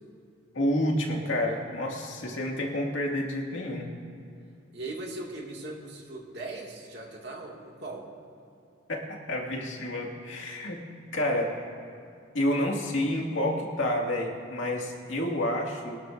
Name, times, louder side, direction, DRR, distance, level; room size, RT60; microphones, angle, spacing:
voice 1, 0.5-3.9 8.9-11.7 12.3-16.0, left 1 dB, 85° left, -1 dB, 2.0 m, -29 dB
voice 2, 4.7-8.1, right 2 dB, 60° right, -1 dB, 2.0 m, -39 dB
22.5 x 12.5 x 2.6 m, 2.5 s
head